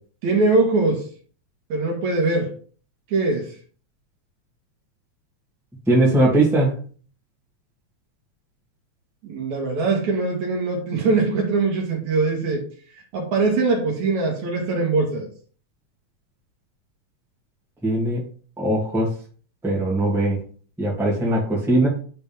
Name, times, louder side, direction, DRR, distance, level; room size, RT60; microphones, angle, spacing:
voice 1, 0.2-1.0 1.7-2.5 3.1-3.5 9.2-12.6 13.1-15.3, right 3 dB, 65° right, 1 dB, 2.8 m, -22 dB
voice 2, 5.9-6.7 17.8-18.2 18.6-19.1 19.6-20.4 20.8-21.9, right 1 dB, ahead, -4 dB, 1.7 m, -20 dB
9.8 x 3.9 x 3.4 m, 0.42 s
omnidirectional pair, 3.6 m